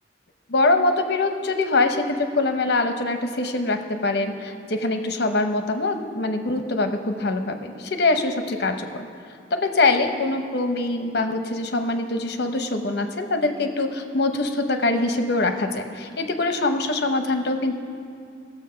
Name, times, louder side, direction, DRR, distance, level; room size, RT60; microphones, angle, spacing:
voice 1, 0.5-9.1 9.5-17.7, left 2 dB, 65° left, 6 dB, 0.8 m, -23 dB
15.0 x 7.1 x 5.7 m, 2.4 s
head